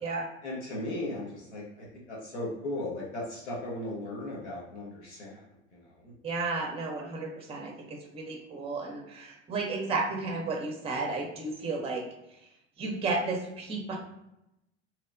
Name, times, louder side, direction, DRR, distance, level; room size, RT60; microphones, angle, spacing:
voice 1, 0.4-5.4 5.7-6.1, left 1 dB, 90° left, -5 dB, 1.0 m, -37 dB
voice 2, 6.2-12.0 12.8-14.0, right 3 dB, 15° right, 1 dB, 0.6 m, -33 dB
3.0 x 2.0 x 2.5 m, 0.86 s
hypercardioid pair, 80°, 34 cm